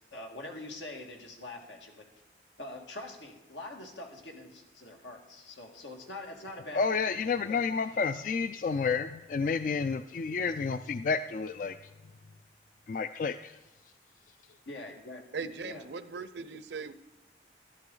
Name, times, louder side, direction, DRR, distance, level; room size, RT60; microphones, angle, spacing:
voice 1, 0.1-2.1 2.6-6.8 7.2-7.6 14.7-15.2 15.6-15.8, left 2 dB, 85° left, 2 dB, 1.9 m, -44 dB
voice 2, 6.7-11.8 12.9-13.5, left 5 dB, 45° left, 11 dB, 0.3 m, -30 dB
voice 3, 15.3-16.9, right 5 dB, 75° right, 13 dB, 0.6 m, -39 dB
12.0 x 12.0 x 3.9 m, 1.1 s
head